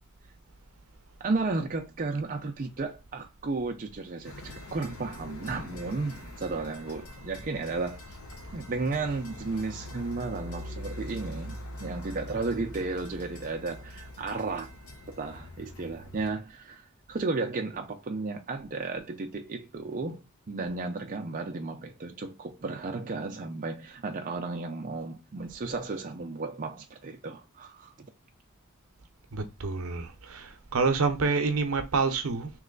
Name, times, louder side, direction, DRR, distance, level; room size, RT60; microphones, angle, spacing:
voice 1, 1.2-8.0 8.5-14.7 15.1-16.8 17.1-28.1, right 3 dB, 40° right, 0.5 m, -34 dB
sound 1, 4.2-16.3, left 1 dB, 75° left, 0.9 m, -43 dB
voice 2, 29.3-32.5, right 4 dB, 70° right, 0.7 m, -28 dB
3.2 x 3.1 x 3.8 m
head